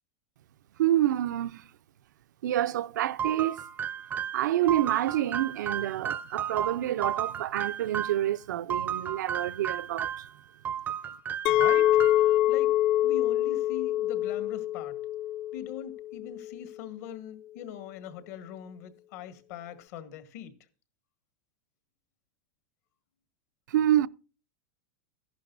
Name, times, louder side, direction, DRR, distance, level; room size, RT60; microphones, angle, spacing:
voice 1, 0.8-1.7 2.4-3.6 4.3-10.3 23.7-24.1, right 12 dB, 85° right, 0.5 m, -27 dB
sound 1, 3.2-8.3 8.7-10.3 10.6-12.4, right 8 dB, 20° right, 0.5 m, -33 dB
voice 2, 11.5-12.0 12.5-12.7 13.0-15.0 15.5-20.5, left 9 dB, 60° left, 1.9 m, -42 dB
Chink clink, 11.5-16.6, left 13 dB, 45° left, 0.6 m, -25 dB
14.5 x 11.0 x 2.5 m
supercardioid pair, 150°, 10 cm